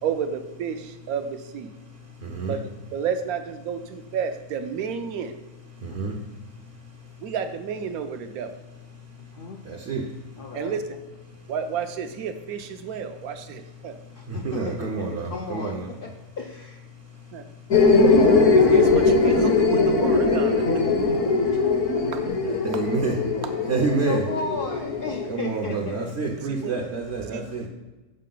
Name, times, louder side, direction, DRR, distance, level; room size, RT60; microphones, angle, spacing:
voice 1, 0.0-1.7 2.4-5.4 7.2-8.5 10.5-10.8 11.5-14.0 17.3-17.5 18.5-20.8 22.1-22.3 22.7-22.8 26.4-26.8 27.3-27.4, right 7 dB, 75° right, 7 dB, 1.1 m, -31 dB
voice 2, 2.2-2.5 5.8-6.1 9.7-10.0 14.3-15.9 22.6-23.1 23.7-24.2 25.3-27.7, right 4 dB, 60° right, 1 dB, 0.8 m, -28 dB
voice 3, 9.2-9.6 10.4-10.7 14.1-16.8 23.7-26.1, left 4 dB, 80° left, 1 dB, 0.4 m, -35 dB
sound 1, 17.7-25.3, left 3 dB, 60° left, 1.0 m, -20 dB
6.5 x 4.5 x 3.8 m, 1.2 s
omnidirectional pair, 1.6 m